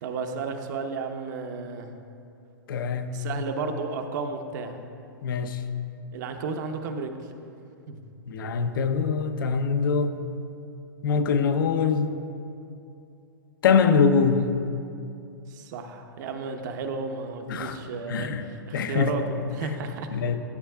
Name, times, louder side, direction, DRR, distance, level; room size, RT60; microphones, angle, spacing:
voice 1, 0.0-1.9 3.1-4.9 6.1-7.2 7.9-8.0 15.5-20.1, right 4 dB, 60° right, 5 dB, 0.8 m, -33 dB
voice 2, 2.7-3.1 5.2-5.6 8.3-10.2 11.0-12.2 13.6-14.4 17.5-17.8 18.1-18.4 18.7-19.1 19.6-19.7 20.1-20.4, left 5 dB, 75° left, 8 dB, 0.6 m, -23 dB
14.0 x 7.7 x 2.3 m, 2.6 s
hypercardioid pair, 125°, 11 cm